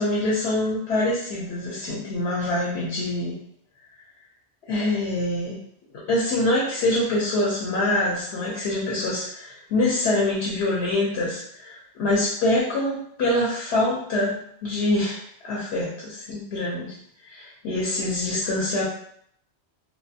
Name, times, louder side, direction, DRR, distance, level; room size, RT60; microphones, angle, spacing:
voice 1, 0.0-3.4 4.7-5.6 6.1-16.9 17.2-18.8, left 1 dB, 75° left, -5 dB, 0.9 m, -25 dB
2.4 x 2.3 x 2.6 m, 0.67 s
omnidirectional pair, 1.1 m